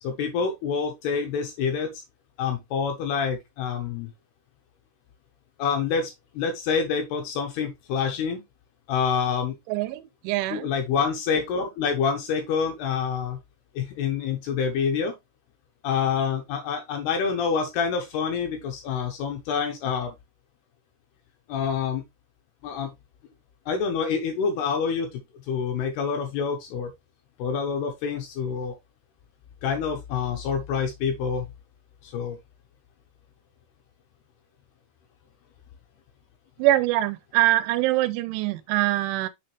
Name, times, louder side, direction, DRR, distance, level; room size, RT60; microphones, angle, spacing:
voice 1, 0.0-2.0 2.4-4.1 5.6-8.4 8.9-9.6 10.5-13.4 13.8-15.1 15.8-20.1 21.5-22.0 22.6-22.9 23.7-25.2 25.5-26.9 27.4-28.8 29.6-31.5 32.0-32.4, left 6 dB, 75° left, 2.5 m, -27 dB
voice 2, 9.7-10.7 36.6-39.3, right 15 dB, 85° right, 2.9 m, -24 dB
6.7 x 5.7 x 3.2 m
omnidirectional pair, 5.6 m